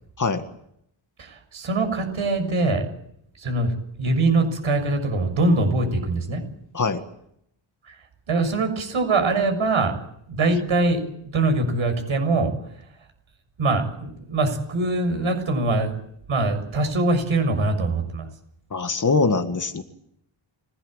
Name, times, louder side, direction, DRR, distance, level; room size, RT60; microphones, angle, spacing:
voice 1, 1.2-2.8 3.4-3.7 4.0-6.4 7.9-8.0 8.3-9.9 10.3-11.0 11.3-12.5 13.6-15.9 16.3-18.3, right 2 dB, 75° right, 6 dB, 6.9 m, -23 dB
voice 2, 18.7-19.8, left 4 dB, 40° left, 8 dB, 1.8 m, -22 dB
25.0 x 18.0 x 9.0 m, 0.74 s
wide cardioid pair, 150°, 49 cm